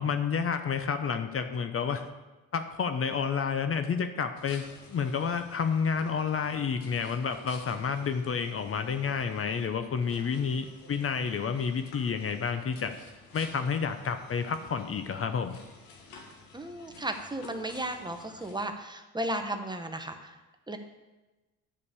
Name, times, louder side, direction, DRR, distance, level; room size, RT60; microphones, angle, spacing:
voice 1, 0.0-2.1 2.5-13.0 13.3-15.6, left 6 dB, 40° left, 8 dB, 0.8 m, -30 dB
sound 1, 4.4-18.7, left 4 dB, 80° left, 1.9 m, -52 dB
voice 2, 16.5-20.4 20.7-20.8, right 1 dB, 15° right, 6 dB, 1.1 m, -35 dB
9.9 x 5.3 x 8.2 m, 1.1 s
cardioid pair, 90°, 34 cm